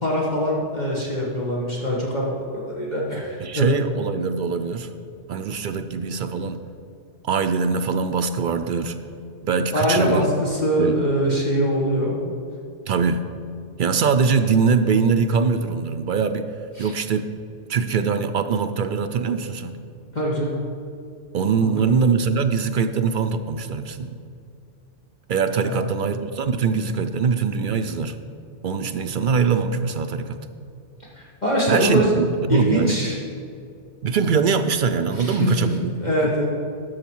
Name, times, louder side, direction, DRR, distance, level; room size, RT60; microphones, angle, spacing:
voice 1, 0.0-3.7 9.7-12.2 16.8-16.9 20.1-20.6 21.8-22.1 25.6-25.8 31.1-32.1 32.5-33.2 35.2-35.7 36.0-36.5, equal, 40° left, -4 dB, 1.5 m, -23 dB
voice 2, 3.4-4.9 5.3-6.6 7.2-9.0 9.4-10.3 10.8-11.0 12.9-13.2 13.8-16.5 16.8-17.3 17.7-19.8 21.3-24.2 25.3-28.2 28.6-30.4 31.7-32.2 32.5-33.0 34.0-35.9 36.2-36.3, right 5 dB, 60° right, 8 dB, 0.5 m, -22 dB
12.5 x 7.1 x 4.5 m, 2.4 s
omnidirectional pair, 1.2 m